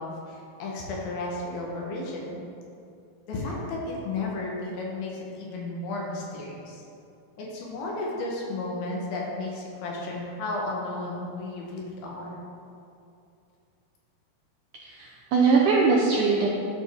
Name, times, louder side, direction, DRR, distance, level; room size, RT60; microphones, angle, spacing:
voice 1, 0.0-2.4 3.3-6.8 7.4-12.4, left 2 dB, 75° left, -2 dB, 2.9 m, -33 dB
voice 2, 14.8-16.5, right 4 dB, 80° right, -3 dB, 1.8 m, -21 dB
11.5 x 4.3 x 3.5 m, 2.5 s
omnidirectional pair, 4.4 m